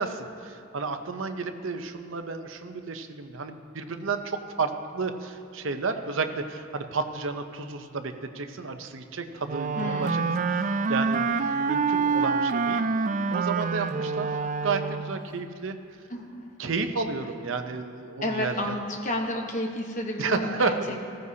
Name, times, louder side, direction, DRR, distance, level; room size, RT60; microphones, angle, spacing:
voice 1, 0.0-12.8 13.3-14.4 14.6-15.8 16.6-18.7 20.2-21.0, right 4 dB, 75° right, 7 dB, 0.7 m, -32 dB
Wind instrument woodwind instrument, 9.4-15.2, right 4 dB, 40° right, 0.3 m, -26 dB
voice 2, 9.8-10.3 16.1-16.4 18.2-20.7, left 1 dB, 35° left, 2 dB, 1.1 m, -31 dB
15.5 x 14.5 x 2.8 m, 2.4 s
head